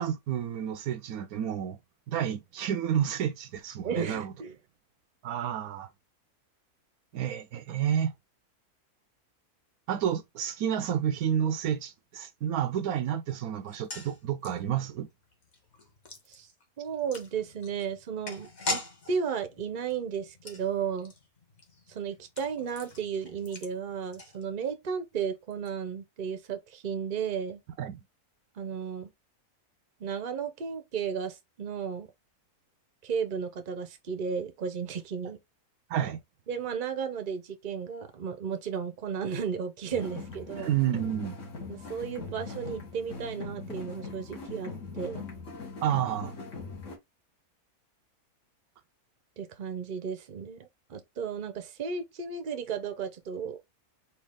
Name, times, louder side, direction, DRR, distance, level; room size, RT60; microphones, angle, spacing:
voice 1, 0.0-1.8 2.1-4.3 5.2-5.9 7.1-8.1 9.9-15.1 27.8-28.0 35.9-36.2 40.5-41.4 45.8-46.3, right 9 dB, 75° right, 1.1 m, -30 dB
voice 2, 3.8-4.6 16.3-16.5 16.8-18.8 19.1-21.1 21.9-27.6 28.6-29.1 30.0-32.1 33.0-35.4 36.5-40.7 41.7-45.3 49.4-53.6, right 6 dB, 40° right, 0.8 m, -34 dB
sound 1, 13.6-24.9 25.1-25.2 25.5-25.7, left 2 dB, 35° left, 1.0 m, -42 dB
sound 2, 39.9-47.0, left 3 dB, 55° left, 1.8 m, -41 dB
4.4 x 2.8 x 3.5 m
omnidirectional pair, 1.6 m